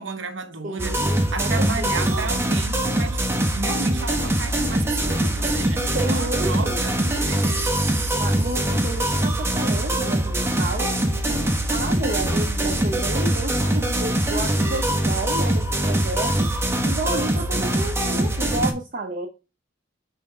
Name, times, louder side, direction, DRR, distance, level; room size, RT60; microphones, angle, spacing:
voice 1, 0.0-8.1 17.5-18.0, right 3 dB, 70° right, 0.9 m, -33 dB
voice 2, 0.6-2.3 5.8-6.8 8.1-10.9 11.3-16.5 16.9-19.3, right 2 dB, 45° right, 0.8 m, -31 dB
sound 1, 0.8-18.7, right 1 dB, 15° right, 1.0 m, -23 dB
6.3 x 3.7 x 4.7 m
head